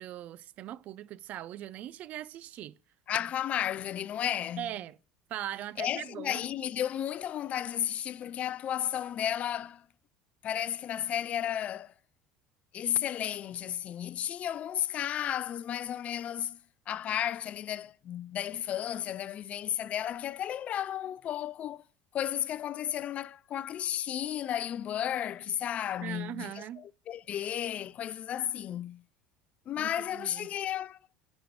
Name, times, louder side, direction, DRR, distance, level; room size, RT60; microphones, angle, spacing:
voice 1, 0.0-2.7 4.6-5.0 5.3-6.4 26.0-26.9 29.8-30.5, right 12 dB, 55° right, 0.5 m, -40 dB
voice 2, 3.1-4.7 5.8-9.8 10.4-11.9 12.7-16.6 16.9-21.8 22.1-29.0 29.7-31.0, left 10 dB, 45° left, 0.4 m, -33 dB
10.0 x 5.5 x 6.1 m
hypercardioid pair, 75°, 3 cm